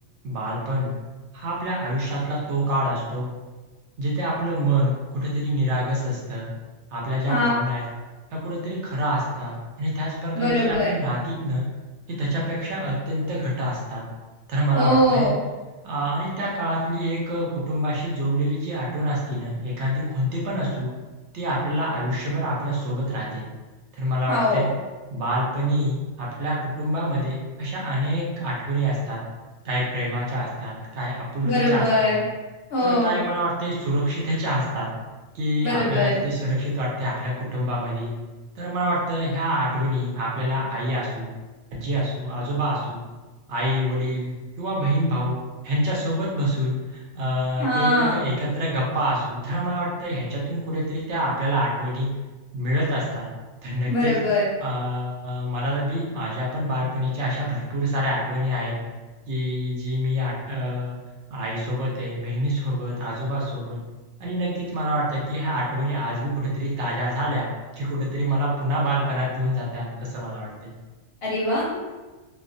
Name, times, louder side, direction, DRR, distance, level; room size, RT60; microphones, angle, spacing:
voice 1, 0.2-0.9 1.3-3.3 4.0-6.5 6.9-7.8 8.3-11.6 12.1-14.0 14.5-15.3 15.8-20.9 21.3-23.4 24.0-24.7 25.1-29.2 29.6-32.1 32.8-34.9 35.3-38.1 38.6-41.3 41.7-43.0 43.5-45.4 45.6-52.1 52.5-53.3 53.6-54.1 54.6-58.7 59.3-60.9 61.3-63.8 64.2-67.5 67.8-70.7, equal, 65° right, -4 dB, 0.8 m, -26 dB
voice 2, 10.3-10.9 14.7-15.3 24.3-24.7 31.4-32.2 32.7-33.2 35.6-36.1 47.6-48.2 53.9-54.5 71.2-71.6, left 1 dB, 60° left, -6 dB, 0.7 m, -22 dB
2.3 x 2.2 x 2.5 m, 1.2 s
omnidirectional pair, 1.4 m